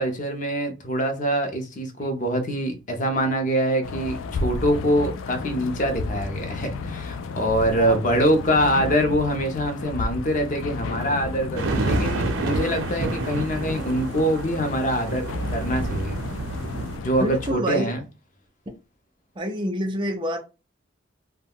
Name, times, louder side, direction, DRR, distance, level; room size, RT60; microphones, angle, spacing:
voice 1, 0.0-16.1 16.9-18.0, equal, 40° left, 0.6 m, -24 dB
sound 1, 3.8-17.5, left 4 dB, 85° left, 0.3 m, -33 dB
voice 2, 7.7-8.3 17.1-17.9 19.4-20.4, equal, 25° right, 0.4 m, -28 dB
sound 2, 11.6-17.0, right 2 dB, 85° right, 0.5 m, -29 dB
2.2 x 2.2 x 3.5 m
head